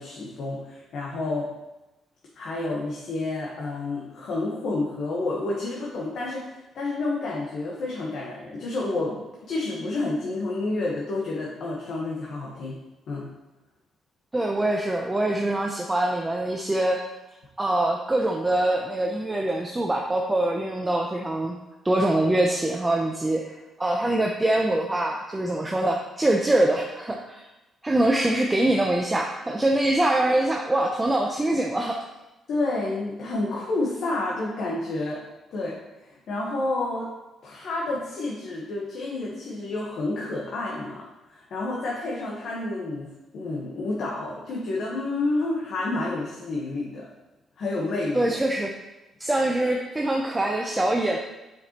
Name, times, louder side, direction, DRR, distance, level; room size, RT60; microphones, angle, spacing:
voice 1, 0.0-1.5 2.4-12.8 13.1-13.3 28.1-28.2 32.5-35.2 35.5-37.1 37.4-41.0 41.3-43.1 43.3-47.1 47.6-48.3, left 2 dB, 65° left, -4 dB, 1.2 m, -29 dB
voice 2, 14.3-17.0 17.6-21.6 21.8-27.5 27.8-32.0 48.1-48.7 49.2-51.2, right 1 dB, 15° right, 1 dB, 0.6 m, -24 dB
6.8 x 5.1 x 3.0 m, 1.0 s
cardioid pair, 90°, 0 cm